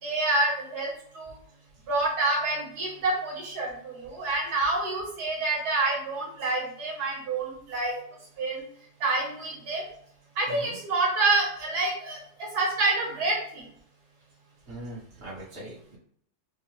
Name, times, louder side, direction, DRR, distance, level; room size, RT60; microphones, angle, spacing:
voice 1, 0.0-1.3 1.9-7.9 8.4-8.6 9.0-9.9 10.3-13.7, right 3 dB, 75° right, -4 dB, 1.7 m, -27 dB
voice 2, 14.7-16.0, right 1 dB, 40° right, -7 dB, 1.4 m, -41 dB
5.1 x 2.1 x 3.0 m, 0.64 s
omnidirectional pair, 1.7 m